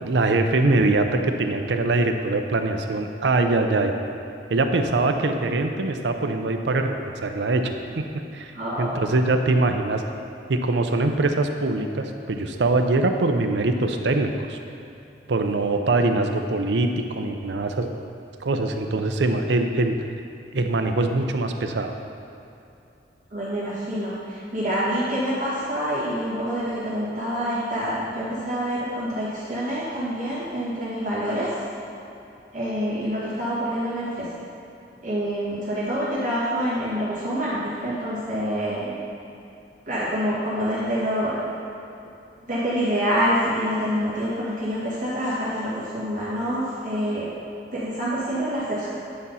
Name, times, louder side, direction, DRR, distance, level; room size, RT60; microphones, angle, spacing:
voice 1, 0.0-3.9 4.5-8.0 8.3-8.5 8.8-10.0 10.5-14.6 15.3-17.9 18.4-20.0 20.5-21.9, right 2 dB, 80° right, 5 dB, 0.6 m, -23 dB
voice 2, 8.5-9.1 23.3-31.5 32.5-34.3 35.0-39.0 39.9-41.5 42.5-47.3 47.7-48.9, equal, 45° right, -10 dB, 1.9 m, -26 dB
9.9 x 4.1 x 5.6 m, 2.8 s
head